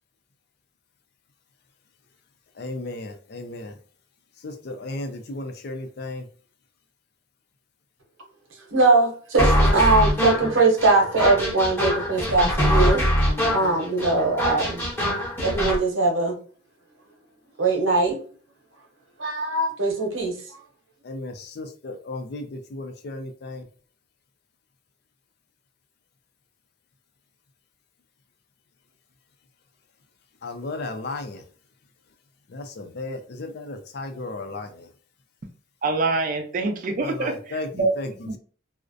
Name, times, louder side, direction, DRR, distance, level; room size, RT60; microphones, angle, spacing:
voice 1, 2.5-3.8 4.4-6.3 21.0-23.7 30.4-31.5 32.5-34.9 37.0-38.4, left 2 dB, 55° left, 6 dB, 0.4 m, -34 dB
voice 2, 8.7-13.0 13.5-14.8 15.4-16.4 17.6-18.2 19.2-20.4, right 3 dB, 90° right, 1 dB, 0.8 m, -21 dB
sound 1, 9.4-15.8, equal, 10° left, 0.7 m, -23 dB
voice 3, 35.8-37.9, right 3 dB, 45° right, 5 dB, 0.4 m, -25 dB
2.4 x 2.0 x 2.5 m, 0.42 s
head